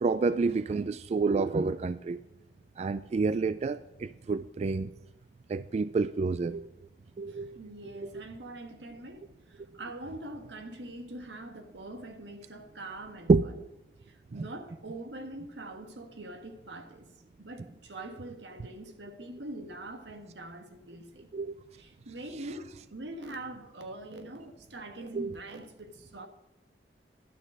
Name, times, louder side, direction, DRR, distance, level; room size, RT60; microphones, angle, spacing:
voice 1, 0.0-2.2 2.8-4.9 5.5-6.7 7.2-7.6 7.9-8.2 13.3-13.5 21.3-21.5 25.1-25.4, right 4 dB, 40° right, 0.3 m, -28 dB
voice 2, 7.2-13.5 14.0-17.1 17.4-21.3 21.8-26.3, right 1 dB, 85° right, 1.5 m, -43 dB
11.5 x 6.5 x 6.3 m
head